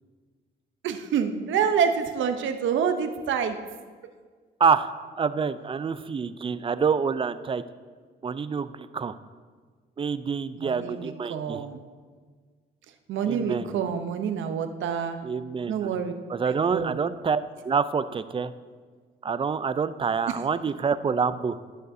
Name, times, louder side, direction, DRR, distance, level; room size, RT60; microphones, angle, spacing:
voice 1, 0.8-3.6 10.6-11.8 13.1-15.2 15.7-16.1 16.4-17.0, right 7 dB, 75° right, 8 dB, 0.8 m, -27 dB
voice 2, 4.6-4.9 5.2-7.6 8.2-9.1 10.0-11.6 13.3-13.9 15.2-15.9 16.3-18.5 19.2-21.6, right 6 dB, 25° right, 13 dB, 0.4 m, -27 dB
17.5 x 6.6 x 2.7 m, 1.5 s
cardioid pair, 90°, 20 cm